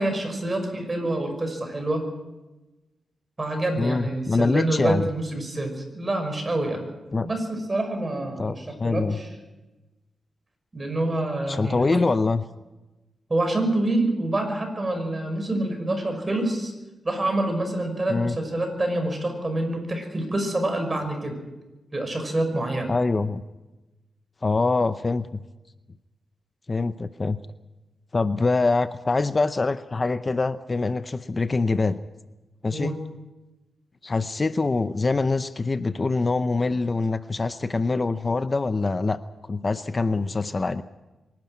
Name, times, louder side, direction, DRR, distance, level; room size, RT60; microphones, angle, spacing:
voice 1, 0.0-2.0 3.4-6.8 7.2-9.3 10.7-12.0 13.3-16.7 17.0-21.4 21.9-22.9 32.7-32.9, right 1 dB, 30° right, 5 dB, 5.7 m, -27 dB
voice 2, 3.8-5.1 7.1-7.3 8.4-9.2 11.5-12.4 18.1-18.4 22.9-23.4 24.4-25.4 26.7-27.4 28.1-32.0 32.6-32.9 34.0-40.8, left 3 dB, 35° left, 12 dB, 0.6 m, -24 dB
24.0 x 12.0 x 9.3 m, 1.1 s
cardioid pair, 90°, 0 cm